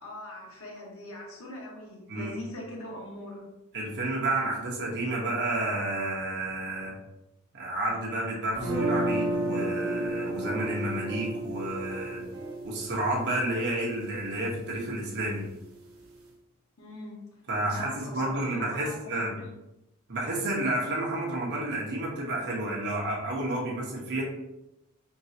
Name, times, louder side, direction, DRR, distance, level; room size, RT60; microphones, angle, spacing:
voice 1, 0.0-3.5 16.8-17.2 17.6-19.5, left 1 dB, 75° left, -2 dB, 1.3 m, -41 dB
voice 2, 3.7-7.0 7.5-12.2 12.6-15.5 17.5-19.3 20.1-24.2, right 1 dB, 55° right, -3 dB, 1.1 m, -30 dB
sound 1, 7.9-8.3 8.5-8.8 9.1-9.5 9.8-10.0 10.4-11.4 11.7-12.6, right 2 dB, 25° right, 1.2 m, -46 dB
sound 2, 8.6-14.5, right 1 dB, 75° right, 1.2 m, -32 dB
4.5 x 3.3 x 2.8 m, 0.92 s
head